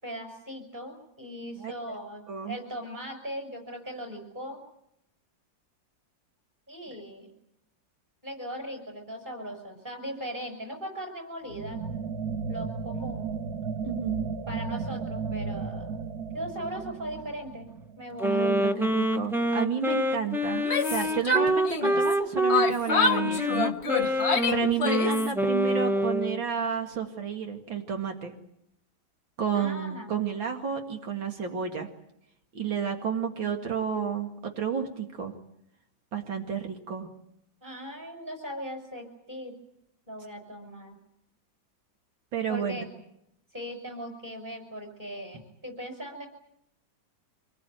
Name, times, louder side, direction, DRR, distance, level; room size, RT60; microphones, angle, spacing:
voice 1, 0.0-4.6 6.7-7.3 8.2-11.8 12.5-13.4 14.5-15.9 16.3-17.7 18.0-18.5 29.5-30.1 37.6-39.5 40.1-41.0 42.5-42.9 43.5-46.3, equal, 25° right, 3 dB, 6.2 m, -39 dB
voice 2, 2.3-2.6 13.8-14.2 18.2-23.7 24.5-28.3 29.4-31.9 32.5-35.3 36.1-37.1 42.3-42.8, right 7 dB, 80° right, 3 dB, 2.8 m, -31 dB
sound 1, 11.5-18.2, right 5 dB, 55° right, 1.6 m, -34 dB
Wind instrument woodwind instrument, 18.2-26.4, equal, 5° right, 0.3 m, -26 dB
Yell, 20.5-22.2 22.5-25.3, left 4 dB, 40° left, 1.2 m, -27 dB
26.0 x 20.0 x 9.2 m, 0.78 s
omnidirectional pair, 2.1 m